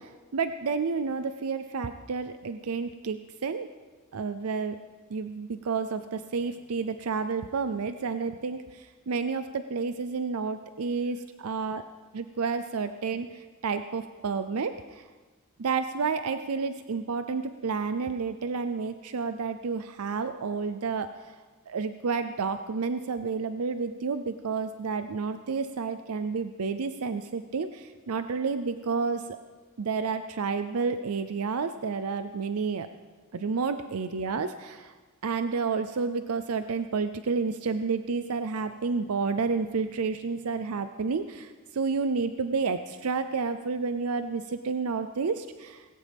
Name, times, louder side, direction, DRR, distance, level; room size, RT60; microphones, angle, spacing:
voice 1, 0.0-3.7 4.1-4.8 5.1-11.8 12.1-15.0 15.6-21.1 21.7-29.4 29.8-32.9 33.3-34.9 35.2-45.8, right 5 dB, 85° right, 10 dB, 0.6 m, -30 dB
19.0 x 16.5 x 3.5 m, 1.3 s
head